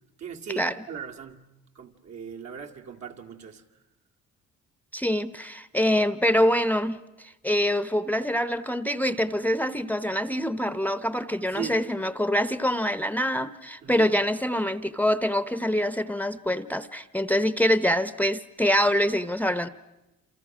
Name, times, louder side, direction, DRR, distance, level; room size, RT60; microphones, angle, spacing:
voice 1, 0.2-1.5 1.7-3.6 11.5-11.8 13.8-14.1, right 7 dB, 65° right, 3 dB, 2.5 m, -38 dB
voice 2, 4.9-19.7, equal, 5° left, 14 dB, 0.8 m, -25 dB
28.0 x 28.0 x 6.1 m, 0.99 s
cardioid pair, 90°, 30 cm